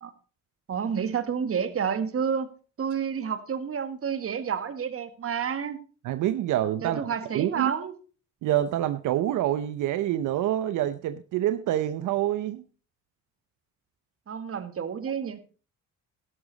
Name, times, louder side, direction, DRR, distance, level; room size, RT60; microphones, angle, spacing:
voice 1, 0.7-2.5 2.8-5.8 6.8-7.9 14.3-15.4, right 7 dB, 50° right, 11 dB, 1.7 m, -29 dB
voice 2, 6.0-7.0 7.3-7.7 8.4-12.6, right 12 dB, 80° right, 12 dB, 0.8 m, -26 dB
12.5 x 11.5 x 4.0 m, 0.37 s
cardioid pair, 90°, 30 cm